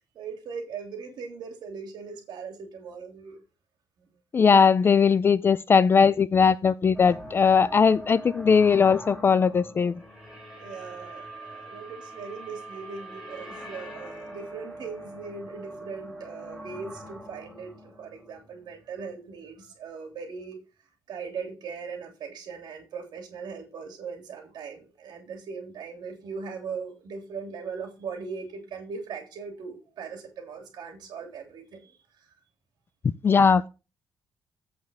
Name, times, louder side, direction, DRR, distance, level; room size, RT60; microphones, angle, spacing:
voice 1, 0.0-3.4 4.0-4.1 10.6-20.6 21.1-32.0, right 5 dB, 75° right, 3.1 m, -39 dB
voice 2, 4.3-9.9 33.2-33.7, left 6 dB, 30° left, 0.3 m, -19 dB
sound 1, 6.9-19.1, right 1 dB, ahead, 3.5 m, -43 dB
8.2 x 5.2 x 6.2 m
wide cardioid pair, 160°, 7 cm